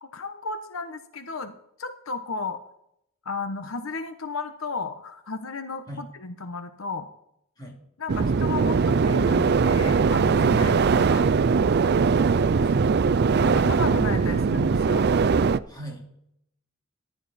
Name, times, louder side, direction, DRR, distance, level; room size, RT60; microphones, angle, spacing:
voice 1, 0.0-1.5 1.8-2.6 3.2-7.1 8.0-11.2 13.4-15.1, left 3 dB, 75° left, 8 dB, 1.0 m, -34 dB
sound 1, 8.1-15.6, right 5 dB, 50° right, 0.4 m, -21 dB
voice 2, 12.2-12.8 15.7-16.0, equal, 20° left, -1 dB, 3.0 m, -38 dB
14.5 x 11.5 x 4.2 m, 0.76 s
head